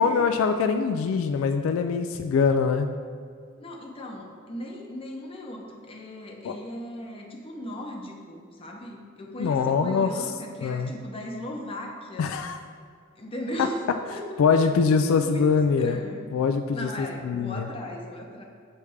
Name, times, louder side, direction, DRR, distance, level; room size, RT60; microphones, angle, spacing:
voice 1, 0.0-2.9 6.4-6.5 9.4-10.3 10.6-10.9 12.2-12.6 14.4-16.0 16.3-17.7, left 5 dB, 75° left, 8 dB, 0.3 m, -23 dB
voice 2, 3.6-12.4 13.2-14.4 15.1-15.4 15.8-16.3 16.7-18.4, left 1 dB, 25° left, 0 dB, 0.8 m, -37 dB
6.9 x 3.3 x 4.9 m, 2.1 s
head